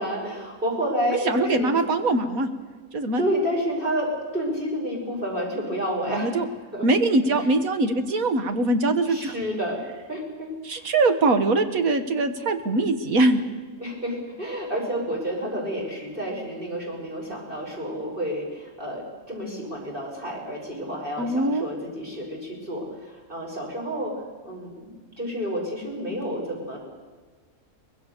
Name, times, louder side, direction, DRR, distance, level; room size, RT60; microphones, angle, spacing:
voice 1, 0.0-1.7 3.2-6.4 6.7-6.9 7.4-7.5 9.1-9.8 10.1-10.9 13.8-24.1 24.4-26.8, equal, 40° right, -2 dB, 5.7 m, -30 dB
voice 2, 1.3-2.5 2.9-3.2 6.1-6.5 6.8-9.3 10.6-13.4 21.2-21.7, right 2 dB, 85° right, 8 dB, 1.9 m, -22 dB
24.0 x 20.0 x 6.8 m, 1.4 s
omnidirectional pair, 1.4 m